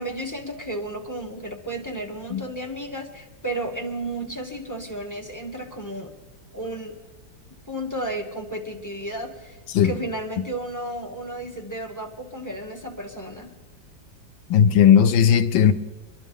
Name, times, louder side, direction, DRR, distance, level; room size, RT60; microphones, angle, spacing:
voice 1, 0.0-6.1 6.5-7.0 7.7-13.5, right 1 dB, 15° left, 0.7 m, -33 dB
voice 2, 14.5-15.7, left 8 dB, 80° left, 1.5 m, -16 dB
24.5 x 12.0 x 3.6 m
omnidirectional pair, 2.1 m